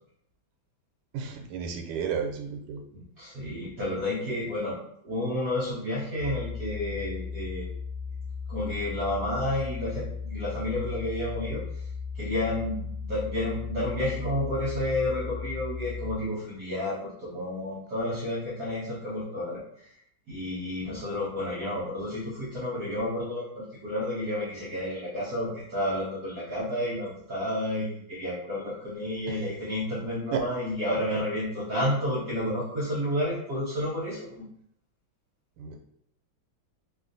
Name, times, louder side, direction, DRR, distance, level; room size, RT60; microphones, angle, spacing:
voice 1, 1.1-2.8 29.3-29.4 30.3-30.4 35.6-35.8, right 7 dB, 90° right, 3 dB, 1.5 m, -32 dB
voice 2, 2.9-4.8 5.0-7.7 8.5-11.6 12.2-19.6 20.3-34.4, left 1 dB, 65° right, -7 dB, 0.8 m, -31 dB
sound 1, 6.2-16.1, left 5 dB, 75° left, 1.7 m, -36 dB
3.4 x 2.4 x 2.5 m, 0.72 s
omnidirectional pair, 2.3 m